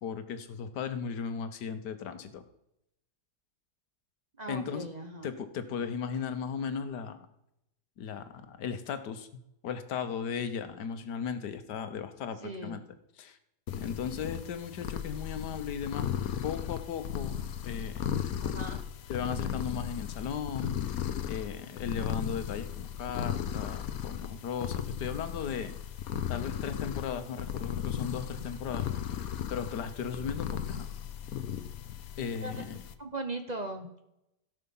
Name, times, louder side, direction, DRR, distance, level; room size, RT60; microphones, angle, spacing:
voice 1, 0.0-2.4 4.5-4.9 5.2-7.2 8.0-12.8 13.2-13.4 13.8-16.1 16.4-18.1 19.1-21.0 21.3-25.7 26.3-29.2 29.5-30.9 32.2-32.8, left 7 dB, 90° left, 10 dB, 1.6 m, -36 dB
voice 2, 4.4-5.3 12.4-12.8 18.4-18.8 32.4-32.6 33.0-34.0, right 2 dB, 30° right, 5 dB, 1.0 m, -39 dB
sound 1, 13.7-32.9, left 9 dB, 65° left, 1.2 m, -36 dB
17.0 x 5.8 x 5.5 m, 0.84 s
omnidirectional pair, 1.7 m